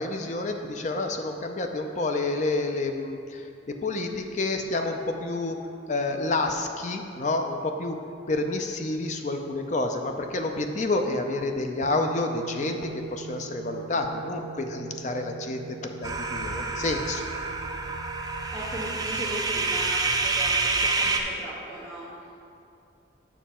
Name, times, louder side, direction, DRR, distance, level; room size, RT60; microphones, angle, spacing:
voice 1, 0.0-5.6 5.9-8.0 8.3-17.2, left 2 dB, 40° left, 5 dB, 0.5 m, -29 dB
sound 1, 11.8-19.1, right 7 dB, 90° right, 0.4 m, -41 dB
sound 2, 16.0-21.2, right 3 dB, 20° right, 0.4 m, -28 dB
voice 2, 18.5-22.1, right 1 dB, 15° left, -12 dB, 1.4 m, -37 dB
7.3 x 5.7 x 4.3 m, 2.5 s
head